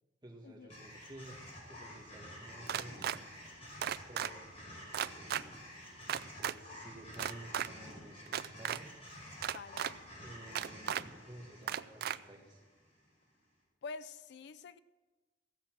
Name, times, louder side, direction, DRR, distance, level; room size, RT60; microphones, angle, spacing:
voice 1, 0.2-3.2 4.1-4.4 6.2-8.9 10.2-12.6, right 1 dB, 25° right, 1.9 m, -53 dB
sound 1, 0.7-13.0, equal, 35° left, 5.4 m, -50 dB
sound 2, 2.7-3.2 3.8-4.3 4.9-5.4 6.1-6.5 7.1-7.7 8.3-8.8 9.4-9.9 10.6-11.0 11.7-12.2, right 9 dB, 55° right, 0.4 m, -35 dB
voice 2, 9.5-10.1 13.8-14.8, left 4 dB, 65° left, 0.4 m, -47 dB
15.5 x 7.2 x 7.5 m
head